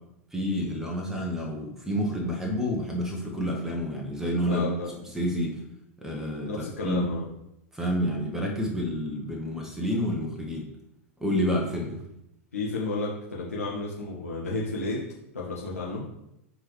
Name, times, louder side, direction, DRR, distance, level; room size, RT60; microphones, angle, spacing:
voice 1, 0.3-4.7 5.0-5.6 6.0-7.1 7.7-10.7 11.2-12.0, equal, 5° right, 0 dB, 1.4 m, -29 dB
voice 2, 4.5-4.9 6.4-7.2 12.5-15.0 15.3-16.0, left 3 dB, 80° left, -5 dB, 1.3 m, -32 dB
8.1 x 3.9 x 3.2 m, 0.84 s
figure-of-eight pair, 90°, 8 cm